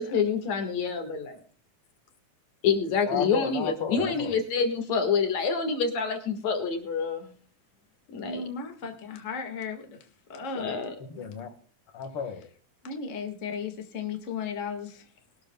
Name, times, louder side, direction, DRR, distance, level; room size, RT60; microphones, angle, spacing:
voice 1, 0.0-1.4 2.6-7.3 8.1-8.4 10.6-10.9, left 5 dB, 65° left, 5 dB, 3.0 m, -27 dB
voice 2, 3.1-4.4 11.0-11.5 11.9-12.5, left 7 dB, 50° left, 6 dB, 2.6 m, -33 dB
voice 3, 8.2-10.7 12.8-15.1, left 5 dB, 30° left, 3 dB, 1.8 m, -35 dB
22.0 x 12.5 x 2.3 m, 0.43 s
omnidirectional pair, 3.4 m